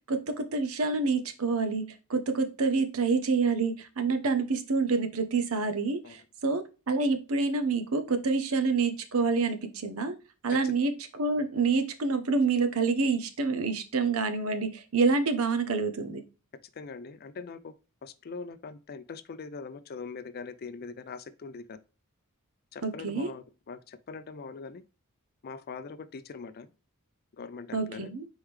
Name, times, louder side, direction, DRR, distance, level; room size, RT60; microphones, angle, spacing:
voice 1, 0.1-10.1 10.4-16.2 22.8-23.3 27.7-28.3, right 4 dB, 70° right, 0.8 m, -27 dB
voice 2, 16.8-17.7 18.0-21.8 22.7-24.8 25.4-26.7 27.4-28.1, left 4 dB, 45° left, 0.4 m, -42 dB
4.5 x 3.6 x 3.2 m
head